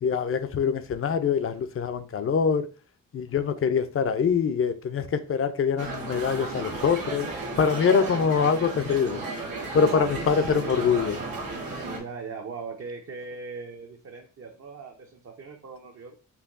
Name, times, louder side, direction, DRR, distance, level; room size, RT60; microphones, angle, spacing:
voice 1, 0.0-2.7 3.1-7.3 7.6-9.2 9.7-11.2, left 6 dB, 40° left, 0.4 m, -24 dB
sound 1, 5.8-12.0, right 3 dB, 90° right, 1.2 m, -34 dB
voice 2, 8.0-8.6 9.9-10.4 11.9-16.2, right 4 dB, 45° right, 0.6 m, -40 dB
5.6 x 2.2 x 2.5 m
cardioid pair, 70°, 33 cm